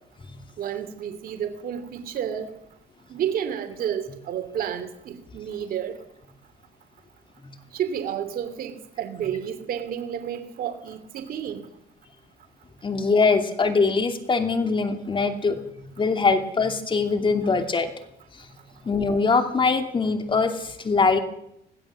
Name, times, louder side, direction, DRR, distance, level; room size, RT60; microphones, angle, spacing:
voice 1, 0.6-2.5 3.1-5.9 7.7-11.6, right 9 dB, 60° right, 7 dB, 2.7 m, -31 dB
voice 2, 12.8-15.6 16.0-17.9 18.8-21.2, left 4 dB, 30° left, 7 dB, 2.7 m, -22 dB
21.5 x 16.5 x 7.5 m, 0.78 s
cardioid pair, 110°, 17 cm